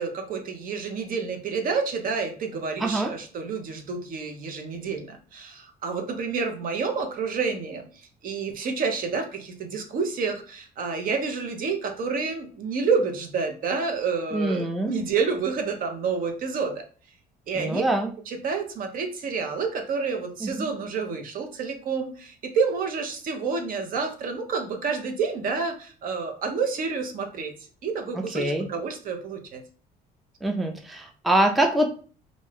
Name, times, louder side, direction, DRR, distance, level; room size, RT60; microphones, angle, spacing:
voice 1, 0.0-16.8 17.5-17.8 18.3-27.5 27.8-29.6, right 5 dB, 55° right, 5 dB, 0.6 m, -29 dB
voice 2, 2.8-3.1 14.3-14.9 17.6-18.1 20.4-20.7 28.2-28.7 30.4-31.9, right 1 dB, ahead, 3 dB, 0.4 m, -24 dB
2.5 x 2.2 x 3.3 m, 0.40 s
cardioid pair, 110°, 17 cm